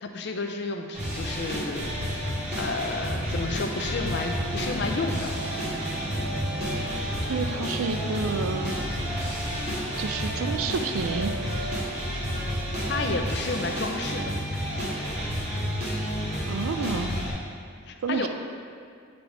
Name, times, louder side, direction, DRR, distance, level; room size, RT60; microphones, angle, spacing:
voice 1, 0.0-5.3 5.6-5.8 12.9-14.3 17.9-18.3, left 3 dB, 55° left, 4 dB, 0.5 m, -32 dB
sound 1, 0.9-17.3, equal, 35° right, 1.5 m, -30 dB
sound 2, 4.1-14.4, right 2 dB, 50° right, 1.4 m, -40 dB
voice 2, 7.3-8.7 10.0-11.4 16.5-17.2 18.0-18.3, right 4 dB, 80° right, 7 dB, 0.4 m, -29 dB
8.4 x 3.9 x 3.5 m, 2.2 s
head